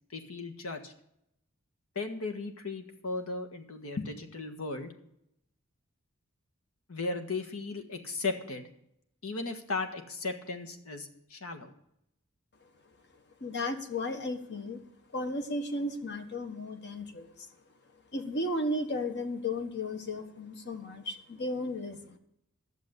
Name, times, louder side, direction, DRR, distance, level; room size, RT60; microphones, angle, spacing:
voice 1, 0.1-0.9 1.9-4.9 6.9-8.7 9.2-11.7, left 3 dB, 80° left, 6 dB, 1.5 m, -36 dB
voice 2, 13.1-14.8 15.1-17.5 18.1-22.2, left 1 dB, 55° left, 7 dB, 1.4 m, -35 dB
11.5 x 7.2 x 8.1 m, 0.76 s
head